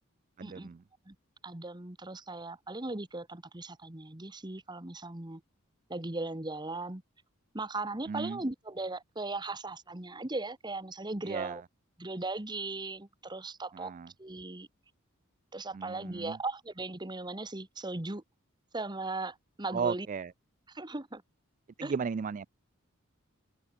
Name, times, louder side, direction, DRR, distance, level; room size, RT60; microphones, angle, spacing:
voice 1, 0.4-0.8 8.1-8.4 11.2-11.6 13.7-14.1 15.7-16.4 19.7-20.3 21.8-22.5, right 6 dB, 35° right, 0.3 m, -35 dB
voice 2, 1.4-5.4 5.9-7.0 7.5-11.6 12.0-14.7 15.5-18.2 18.7-20.1 20.7-21.2 21.8-21.9, right 2 dB, 20° right, 1.3 m, -38 dB
head